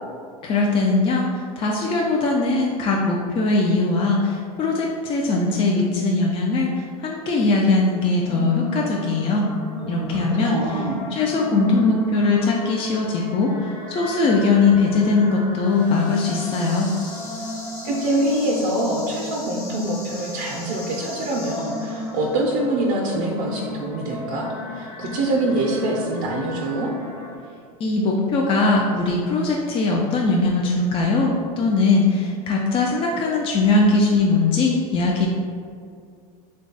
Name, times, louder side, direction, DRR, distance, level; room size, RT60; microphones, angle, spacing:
voice 1, 0.4-6.7 7.0-9.5 9.9-10.6 11.1-13.5 13.9-16.9 27.8-35.3, left 3 dB, 30° left, -1 dB, 0.4 m, -20 dB
sound 1, 8.3-27.4, left 1 dB, 45° left, 1.0 m, -34 dB
voice 2, 9.8-11.0 17.4-17.5 17.8-26.9, right 1 dB, 55° right, -1 dB, 0.5 m, -25 dB
sound 2, 15.6-22.3, left 2 dB, 85° left, 0.9 m, -40 dB
3.2 x 2.3 x 3.8 m, 2.3 s
hypercardioid pair, 100°, 20 cm